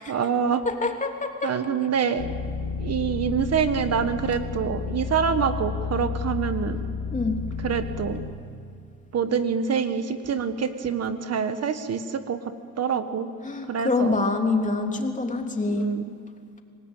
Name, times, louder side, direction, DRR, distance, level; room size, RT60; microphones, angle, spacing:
voice 1, 0.1-0.6 1.4-2.3 2.8-6.8 7.6-8.2 9.1-12.4 12.8-13.3 13.7-14.2 15.7-16.0, right 6 dB, 55° right, 9 dB, 1.5 m, -26 dB
voice 2, 0.6-1.5 7.1-7.4 13.4-15.9, left 3 dB, 25° left, 3 dB, 3.1 m, -25 dB
sound 1, 2.2-8.3, left 5 dB, 90° left, 2.7 m, -31 dB
27.0 x 18.5 x 9.1 m, 2.2 s
cardioid pair, 90°, 30 cm